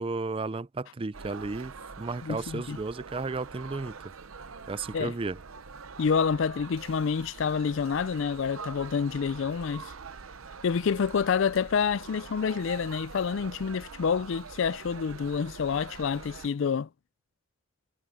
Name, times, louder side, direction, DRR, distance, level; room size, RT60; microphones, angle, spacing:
voice 1, 0.0-4.0 4.7-5.4, right 3 dB, 25° right, 0.4 m, -33 dB
sound 1, 1.1-16.5, right 5 dB, 80° right, 0.8 m, -45 dB
voice 2, 2.2-2.8 4.9-5.1 6.0-9.9 10.6-16.9, left 6 dB, 65° left, 0.4 m, -28 dB
head